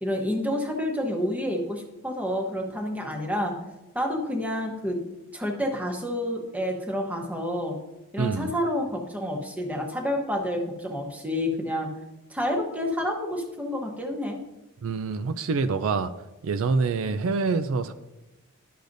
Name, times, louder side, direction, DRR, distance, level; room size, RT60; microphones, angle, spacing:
voice 1, 0.0-3.5 3.9-5.0 5.3-7.8 8.1-11.9 12.3-14.4, left 1 dB, 5° right, 1 dB, 1.0 m, -29 dB
voice 2, 8.2-8.5 14.8-16.1 16.4-17.9, right 4 dB, 65° right, 11 dB, 0.4 m, -26 dB
11.5 x 6.5 x 2.6 m, 1.0 s
head